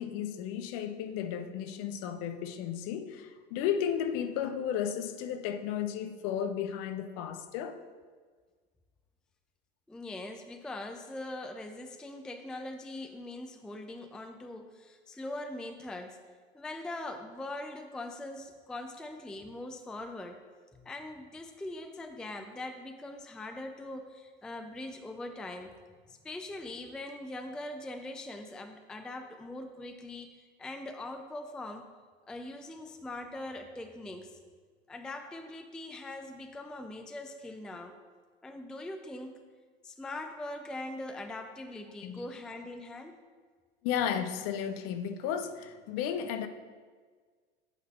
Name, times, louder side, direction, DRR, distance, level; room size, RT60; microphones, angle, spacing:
voice 1, 0.0-7.8 42.0-42.3 43.8-46.5, left 8 dB, 45° left, 0.8 m, -34 dB
voice 2, 9.9-16.2 16.5-20.4 20.7-25.8 26.1-31.9 32.3-34.4 34.9-38.0 38.4-39.4 39.8-43.2, left 2 dB, ahead, 0.4 m, -42 dB
8.3 x 3.9 x 6.9 m
hypercardioid pair, 85°, 33 cm